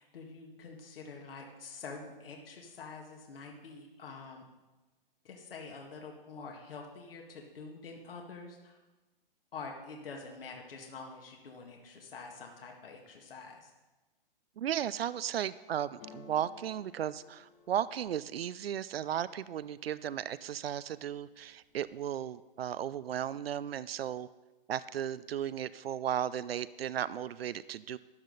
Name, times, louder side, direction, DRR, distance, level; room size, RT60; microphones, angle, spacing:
voice 1, 0.0-4.4 5.2-8.8 9.5-13.7, left 4 dB, 70° left, 0 dB, 2.0 m, -46 dB
voice 2, 14.6-24.3 24.7-28.0, right 10 dB, 90° right, 17 dB, 0.5 m, -35 dB
sound 1, 16.0-19.9 20.3-20.9 21.2-22.0, left 3 dB, 10° left, 0.3 m, -57 dB
13.0 x 10.0 x 4.0 m, 1.1 s
hypercardioid pair, 145°, 29 cm